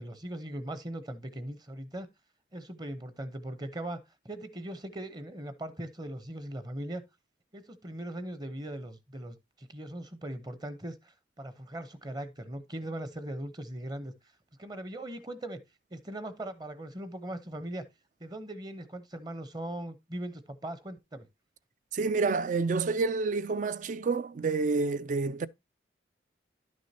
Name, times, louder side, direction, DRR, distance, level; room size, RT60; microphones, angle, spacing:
voice 1, 0.0-2.1 2.5-7.0 7.5-14.1 14.6-15.6 15.9-17.8 18.2-21.3, right 1 dB, 25° right, 0.8 m, -39 dB
voice 2, 21.9-25.5, right 4 dB, 45° right, 0.4 m, -28 dB
11.0 x 6.3 x 2.8 m
head